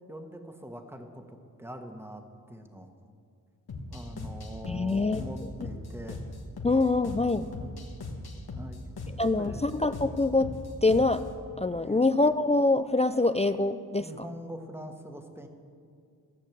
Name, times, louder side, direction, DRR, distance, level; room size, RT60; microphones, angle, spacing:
voice 1, 0.1-2.9 3.9-6.2 7.1-7.8 8.5-8.8 9.4-9.7 11.8-12.0 14.0-15.5, equal, 5° right, 5 dB, 1.4 m, -43 dB
sound 1, 3.7-11.3, left 2 dB, 70° left, 1.5 m, -39 dB
voice 2, 4.7-5.2 6.6-7.5 9.2-10.5 10.8-11.2 11.6-14.3, left 2 dB, 20° left, 11 dB, 0.3 m, -25 dB
14.5 x 6.5 x 7.6 m, 2.3 s
cardioid pair, 55°, 39 cm